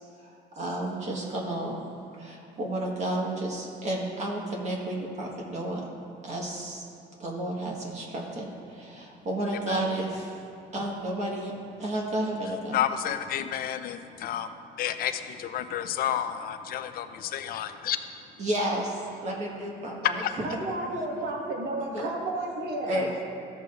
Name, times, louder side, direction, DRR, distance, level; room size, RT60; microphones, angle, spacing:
voice 1, 0.2-1.8 2.1-5.9 6.2-6.8 7.2-10.4 10.7-12.8 18.4-20.2 21.9-22.1 22.9-23.2, right 1 dB, 45° right, -1 dB, 1.4 m, -32 dB
voice 2, 12.7-18.0 20.1-20.3, left 10 dB, 60° left, 9 dB, 0.6 m, -31 dB
voice 3, 20.4-23.1, right 2 dB, 70° right, 0 dB, 1.5 m, -32 dB
14.0 x 6.9 x 2.5 m, 2.7 s
cardioid pair, 110°, 17 cm